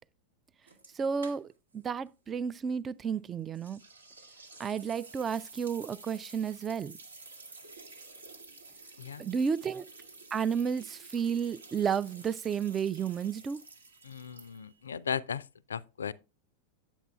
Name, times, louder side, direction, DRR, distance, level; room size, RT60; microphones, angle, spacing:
sound 1, 0.7-1.8 2.1-2.2 3.5-14.8, right 3 dB, 75° right, 1.2 m, -51 dB
voice 1, 0.9-3.8 4.6-7.0 9.2-9.8 10.3-13.6, right 7 dB, 20° right, 0.3 m, -32 dB
voice 2, 14.0-16.1, left 7 dB, 70° left, 0.3 m, -36 dB
9.1 x 7.2 x 2.3 m
figure-of-eight pair, 90°, 0 cm